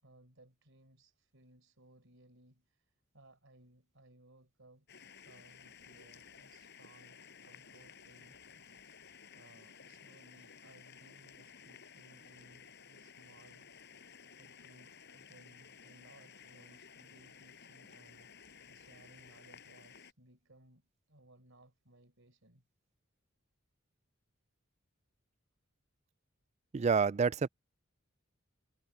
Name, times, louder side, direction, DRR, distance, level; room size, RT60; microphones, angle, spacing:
voice 1, 0.0-4.9 5.2-8.4 9.3-13.7 14.4-18.3 18.7-22.6, right 1 dB, 65° right, 4.8 m, -62 dB
sound 1, 4.9-20.1, left 6 dB, 55° left, 7.7 m, -56 dB
voice 2, 26.7-27.5, right 5 dB, 35° right, 0.4 m, -28 dB
head